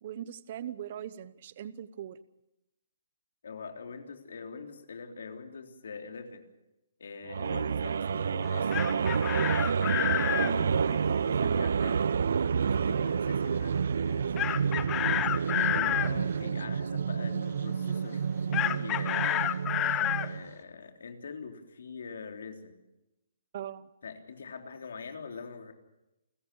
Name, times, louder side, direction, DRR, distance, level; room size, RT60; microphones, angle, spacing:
voice 1, 0.0-2.2 12.9-13.4 15.0-15.4 23.5-23.9, right 10 dB, 45° right, 16 dB, 0.9 m, -41 dB
voice 2, 3.4-6.5 7.0-9.6 10.2-12.2 12.6-14.3 15.5-19.6 20.2-22.8 24.0-25.7, left 5 dB, 75° left, 4 dB, 3.7 m, -44 dB
sound 1, 7.3-20.5, right 6 dB, 70° right, 0.7 m, -29 dB
Chicken rooster, 8.5-10.5 14.4-16.1 18.5-20.3, left 13 dB, 20° left, 0.8 m, -29 dB
29.0 x 15.0 x 7.1 m, 0.92 s
hypercardioid pair, 160°, 0 cm